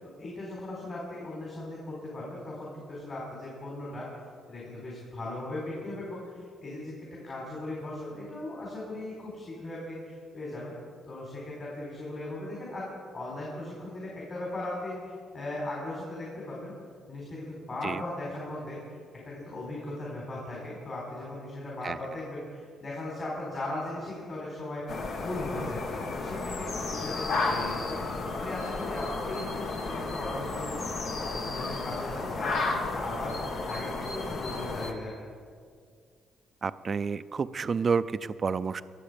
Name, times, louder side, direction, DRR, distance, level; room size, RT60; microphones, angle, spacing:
voice 1, 0.0-4.1 4.5-10.7 11.0-12.9 13.1-16.7 17.1-18.8 19.2-25.8 26.1-30.9 31.2-33.4 33.7-35.1, left 2 dB, 40° left, -4 dB, 4.2 m, -38 dB
sound 1, 24.9-34.9, left 3 dB, 65° left, 1.5 m, -33 dB
voice 2, 36.6-38.8, right 5 dB, 40° right, 14 dB, 0.5 m, -29 dB
22.5 x 7.6 x 5.2 m, 2.1 s
cardioid pair, 90°, 0 cm